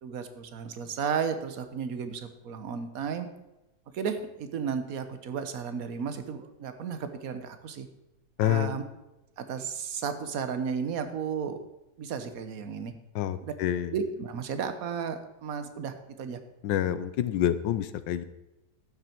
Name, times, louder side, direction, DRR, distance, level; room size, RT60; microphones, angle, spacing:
voice 1, 0.0-3.3 3.9-7.9 8.4-8.8 9.4-11.6 12.0-12.9 13.4-13.5 13.9-16.4, right 6 dB, 55° right, 9 dB, 1.4 m, -33 dB
voice 2, 8.4-8.8 13.1-13.9 16.6-18.2, left 11 dB, 85° left, 14 dB, 1.4 m, -27 dB
12.5 x 9.6 x 4.5 m, 0.97 s
omnidirectional pair, 1.9 m